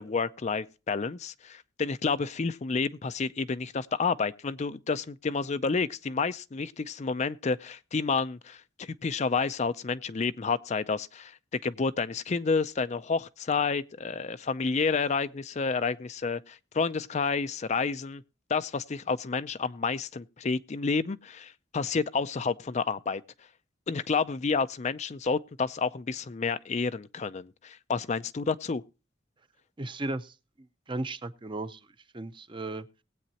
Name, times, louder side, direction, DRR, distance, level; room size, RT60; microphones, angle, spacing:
voice 1, 0.0-18.2 18.5-23.2 23.9-28.8, left 4 dB, 35° left, 0.5 m, -30 dB
voice 2, 29.8-30.3 30.9-31.8 32.1-32.9, right 2 dB, 25° right, 0.7 m, -35 dB
19.5 x 8.6 x 2.8 m
head